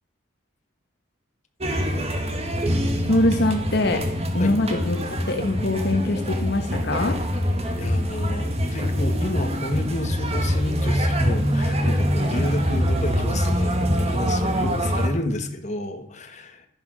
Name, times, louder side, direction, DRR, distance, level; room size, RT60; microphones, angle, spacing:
sound 1, 1.6-15.1, equal, 30° right, 1.9 m, -24 dB
voice 1, 3.1-7.2, left 1 dB, 50° left, 3 dB, 1.4 m, -23 dB
voice 2, 7.8-16.7, left 1 dB, 35° left, 5 dB, 1.7 m, -30 dB
12.5 x 10.5 x 6.5 m, 0.65 s
head